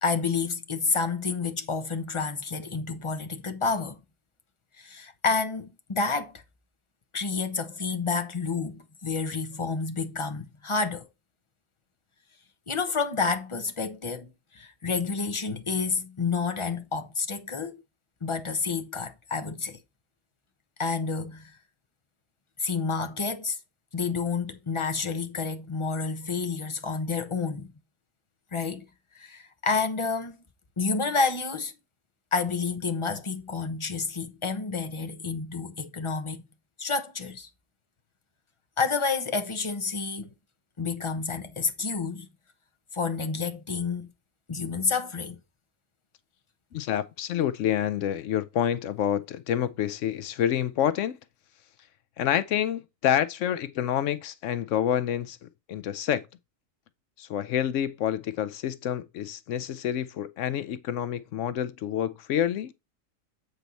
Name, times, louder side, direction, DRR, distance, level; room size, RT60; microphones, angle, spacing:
voice 1, 0.0-4.0 4.8-6.4 7.1-11.1 12.7-17.8 18.2-19.8 20.8-21.6 22.6-23.6 23.9-27.7 28.5-28.8 29.1-30.4 30.8-31.7 32.3-36.5 36.8-37.5 38.8-40.3 40.8-42.3 42.9-44.1 44.5-45.4, left 4 dB, 25° left, 0.8 m, -29 dB
voice 2, 46.7-51.2 52.2-56.2 57.2-62.7, left 10 dB, 75° left, 0.9 m, -28 dB
8.1 x 4.4 x 4.0 m
omnidirectional pair, 1.3 m